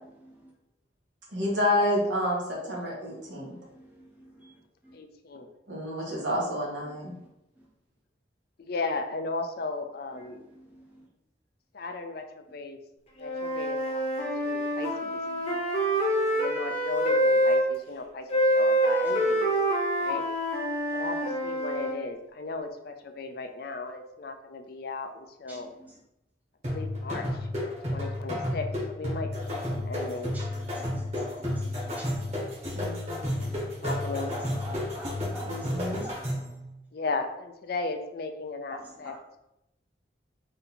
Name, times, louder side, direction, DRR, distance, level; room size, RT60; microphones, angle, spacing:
voice 1, 1.3-3.6 5.7-7.1 32.7-33.3 35.5-36.1, left 1 dB, 85° right, -4 dB, 1.6 m, -29 dB
voice 2, 4.9-5.5 8.6-10.4 11.7-12.8 13.2-15.2 16.3-19.5 20.0-20.2 20.9-25.7 26.7-30.3 33.2-34.3 36.9-39.1, left 3 dB, 55° left, 6 dB, 0.4 m, -36 dB
Wind instrument woodwind instrument, 13.2-17.6 18.3-22.0, equal, 35° left, 0.9 m, -26 dB
sound 1, 26.6-36.6, left 1 dB, 40° right, 1.5 m, -32 dB
voice 3, 34.3-35.5 36.0-36.2 38.7-38.8 39.0-39.2, right 1 dB, 10° right, -4 dB, 0.9 m, -43 dB
3.9 x 2.8 x 4.1 m, 0.86 s
head